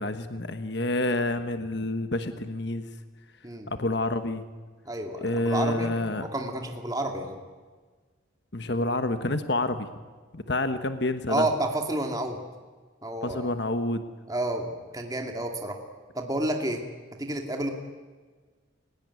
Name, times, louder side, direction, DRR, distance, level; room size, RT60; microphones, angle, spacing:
voice 1, 0.0-2.9 3.7-4.4 5.2-6.3 8.5-9.9 10.3-11.5 13.2-14.0, left 2 dB, 55° left, 9 dB, 1.3 m, -28 dB
voice 2, 4.9-5.9 6.2-7.4 11.3-12.4 13.0-13.5 14.3-15.8 16.1-16.8 17.2-17.7, right 1 dB, 20° right, 3 dB, 2.3 m, -30 dB
29.5 x 17.5 x 9.7 m, 1.4 s
head